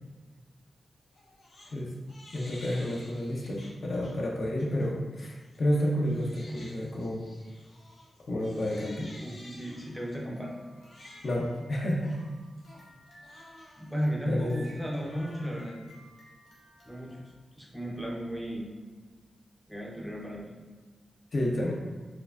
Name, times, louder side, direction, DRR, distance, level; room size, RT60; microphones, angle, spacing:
Crying sobbing, 1.1-1.7 2.1-4.1 4.6-4.9 5.4-17.4, left 1 dB, 85° left, 0.8 m, -53 dB
voice 1, 2.3-7.2 8.3-9.1 11.2-12.2 14.3-14.5 21.3-21.7, left 1 dB, 55° left, -1 dB, 0.6 m, -30 dB
voice 2, 9.2-10.5 13.8-15.8 16.8-17.2 17.5-18.7 19.7-20.5, equal, ahead, -3 dB, 0.5 m, -35 dB
4.4 x 2.3 x 2.4 m, 1.3 s
wide cardioid pair, 115°, 0 cm